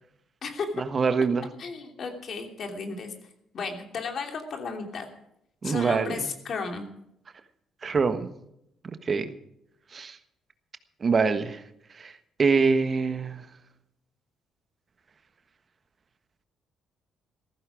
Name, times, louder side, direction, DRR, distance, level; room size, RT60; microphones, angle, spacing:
voice 1, 0.8-1.5 5.6-6.3 7.8-8.3 9.0-9.3 9.9-10.2 11.0-11.6 12.0-12.1 12.4-13.4, right 5 dB, 45° right, 10 dB, 1.4 m, -24 dB
voice 2, 1.6-3.1 3.5-5.1 5.6-6.9, left 4 dB, 55° left, 4 dB, 3.0 m, -34 dB
15.0 x 14.5 x 5.0 m, 0.76 s
supercardioid pair, 60°, 0 cm